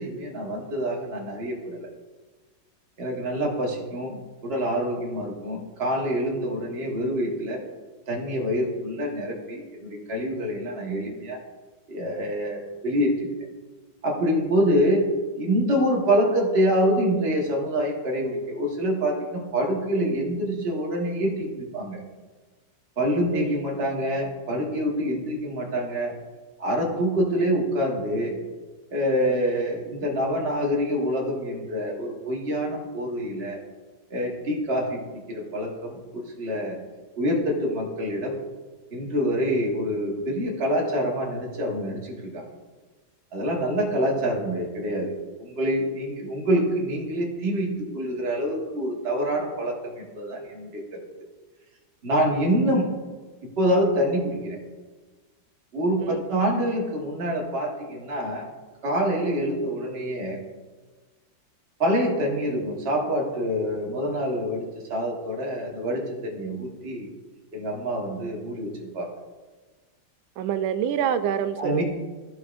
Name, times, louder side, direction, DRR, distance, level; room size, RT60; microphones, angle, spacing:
voice 1, 0.0-1.9 3.0-7.6 8.1-11.4 11.9-13.1 14.0-15.1 15.4-22.0 23.0-26.1 26.6-28.4 28.9-33.6 34.1-36.8 37.2-38.4 38.9-42.5 43.3-47.7 47.9-50.8 52.0-52.9 53.6-54.6 55.7-58.5 58.8-60.4 61.8-67.1 67.5-69.1 71.6-71.8, equal, 35° right, 1.4 m, -26 dB
voice 2, 23.3-23.6 56.0-56.5 70.4-71.8, right 9 dB, 80° right, 1.3 m, -27 dB
14.0 x 4.6 x 2.5 m
omnidirectional pair, 2.1 m